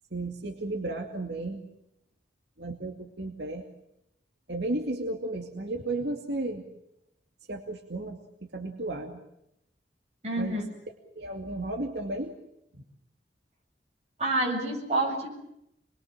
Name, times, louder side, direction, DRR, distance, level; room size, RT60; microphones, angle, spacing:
voice 1, 0.1-1.6 2.6-3.7 4.5-6.6 7.5-8.2 8.5-9.2 10.4-10.7 11.2-12.4 12.7-12.8, right 2 dB, 70° right, 2 dB, 2.4 m, -33 dB
voice 2, 10.2-10.6 14.2-15.3, right 2 dB, 35° right, 0 dB, 7.8 m, -28 dB
27.0 x 22.5 x 7.5 m, 0.80 s
head